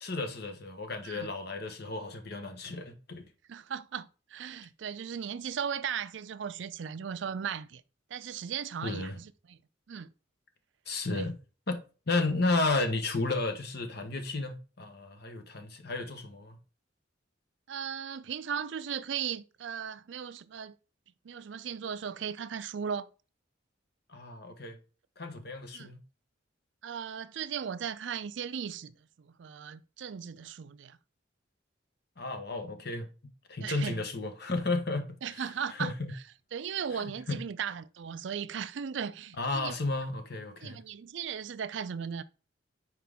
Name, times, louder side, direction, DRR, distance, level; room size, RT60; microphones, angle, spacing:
voice 1, 0.0-3.3 8.8-9.2 10.9-11.3 11.7-16.6 24.1-24.8 25.2-26.0 32.2-33.1 33.5-36.1 36.9-37.4 39.4-40.8, left 3 dB, 55° left, 1.1 m, -33 dB
voice 2, 3.5-7.8 8.1-9.6 9.9-10.1 11.1-11.3 17.7-20.7 21.2-23.1 25.7-25.9 26.8-31.0 33.6-34.0 35.2-35.9 36.5-39.8 40.6-42.2, right 7 dB, 70° right, 0.4 m, -37 dB
5.9 x 4.7 x 3.5 m
head